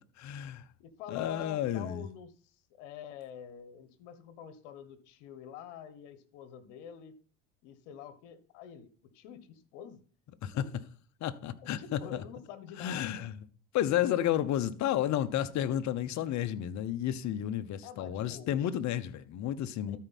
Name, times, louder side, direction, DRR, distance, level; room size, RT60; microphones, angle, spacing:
voice 1, 0.2-0.6 1.1-2.1 10.4-10.6 11.2-12.0 12.8-13.3 13.7-20.0, left 11 dB, 50° left, 1.0 m, -31 dB
voice 2, 0.8-2.3 2.8-7.1 7.6-8.9 9.1-10.0 10.5-10.6 11.6-13.3 17.8-18.7 19.9-20.0, left 8 dB, 75° left, 1.3 m, -47 dB
13.0 x 4.6 x 4.1 m
supercardioid pair, 90°, 35 cm